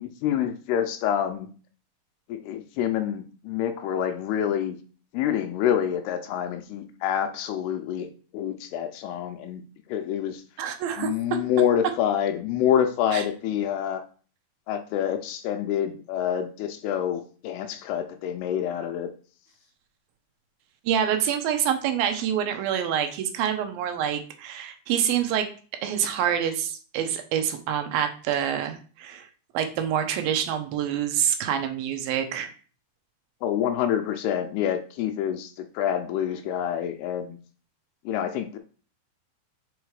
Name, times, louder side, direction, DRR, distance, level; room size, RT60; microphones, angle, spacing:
voice 1, 0.0-1.5 2.3-4.8 5.1-9.6 9.9-10.4 11.0-14.0 14.7-19.1 33.4-37.4 38.1-38.6, left 9 dB, 85° left, 7 dB, 2.6 m, -27 dB
voice 2, 10.6-11.1 13.1-13.2 20.9-25.5 25.8-29.3 29.5-32.5, right 9 dB, 75° right, 7 dB, 2.3 m, -26 dB
5.5 x 4.9 x 4.7 m, 0.40 s
omnidirectional pair, 4.7 m